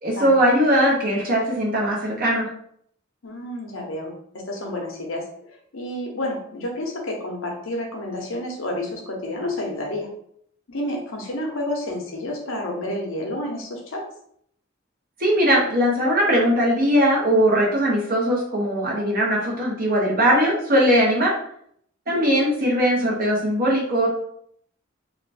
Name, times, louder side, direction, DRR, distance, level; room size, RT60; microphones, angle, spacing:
voice 1, 0.0-2.5 15.2-21.3 22.1-24.1, equal, 45° right, -3 dB, 1.0 m, -20 dB
voice 2, 3.2-10.1 10.7-14.0 22.1-22.4, left 1 dB, 85° left, 0 dB, 0.9 m, -30 dB
2.9 x 2.6 x 3.3 m, 0.68 s
head